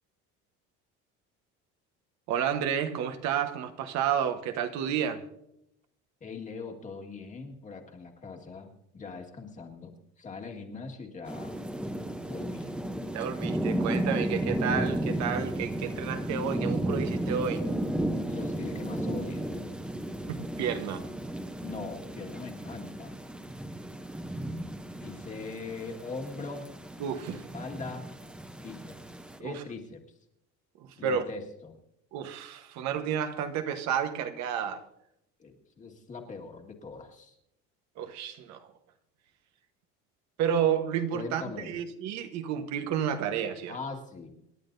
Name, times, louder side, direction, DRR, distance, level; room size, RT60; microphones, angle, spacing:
voice 1, 2.3-5.2 13.1-17.6 20.3-21.0 27.0-27.4 29.4-29.6 30.8-31.2 32.1-34.8 38.0-38.7 40.4-43.7, right 8 dB, 65° right, 1.2 m, -31 dB
voice 2, 6.2-11.6 12.3-12.8 18.2-19.5 21.6-23.2 25.0-26.6 27.5-28.1 28.6-29.0 29.4-30.0 31.0-31.8 35.4-37.4 41.1-41.8 43.7-44.4, left 4 dB, 25° left, 1.8 m, -41 dB
sound 1, 11.3-29.4, right 1 dB, 5° right, 0.7 m, -34 dB
27.0 x 11.0 x 2.7 m
cardioid pair, 150°, 30 cm